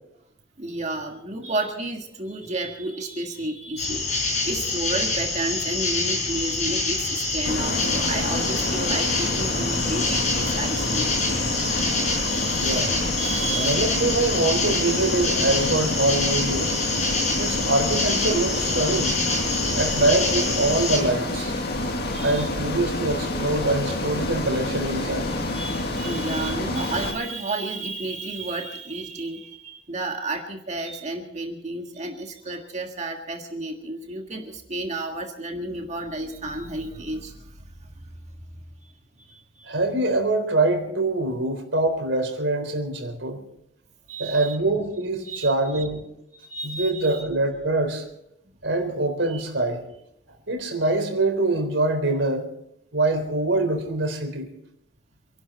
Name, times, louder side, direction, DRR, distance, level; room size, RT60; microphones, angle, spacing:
voice 1, 0.6-4.0 4.4-11.2 12.3-12.9 13.2-13.9 22.1-22.5 25.5-38.1 38.5-38.6 39.2-39.7 44.1-44.6 45.2-45.9 46.4-47.3 49.3-49.4, right 2 dB, 35° right, 3 dB, 1.7 m, -32 dB
sound 1, 3.8-21.0, left 3 dB, 35° left, 4.9 m, -26 dB
Ocean, 7.4-27.1, left 1 dB, 55° left, 2.1 m, -28 dB
voice 2, 12.5-12.9 13.6-16.8 17.4-19.1 19.7-21.6 22.2-25.3 39.7-43.4 44.2-46.0 46.6-48.0 48.6-49.8 50.5-52.5 52.9-54.5, right 2 dB, 70° right, 5 dB, 3.9 m, -24 dB
27.5 x 12.0 x 4.3 m, 0.78 s
head